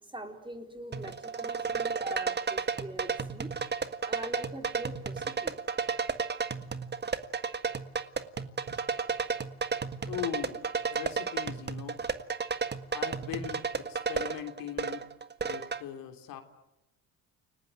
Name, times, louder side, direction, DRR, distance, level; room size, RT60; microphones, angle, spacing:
voice 1, 0.0-3.5 4.0-5.6, right 1 dB, 15° right, 5 dB, 4.1 m, -42 dB
sound 1, 0.9-15.8, right 5 dB, 30° right, 1.6 m, -33 dB
voice 2, 10.1-10.6 10.9-12.0 12.9-15.0 15.4-16.4, left 10 dB, 70° left, 6 dB, 3.4 m, -39 dB
29.5 x 19.0 x 9.2 m, 0.94 s
supercardioid pair, 90°, 35 cm